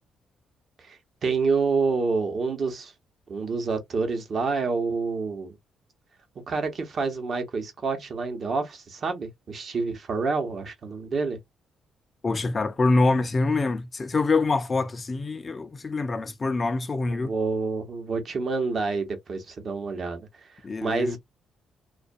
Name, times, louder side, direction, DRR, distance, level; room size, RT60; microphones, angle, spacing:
voice 1, 0.8-2.9 3.3-5.6 6.5-11.4 17.1-20.3 20.8-21.2, right 4 dB, 50° right, 0.9 m, -28 dB
voice 2, 12.2-17.3 20.6-21.2, left 3 dB, 35° left, 0.4 m, -25 dB
2.4 x 2.2 x 2.4 m
cardioid pair, 90°, 0 cm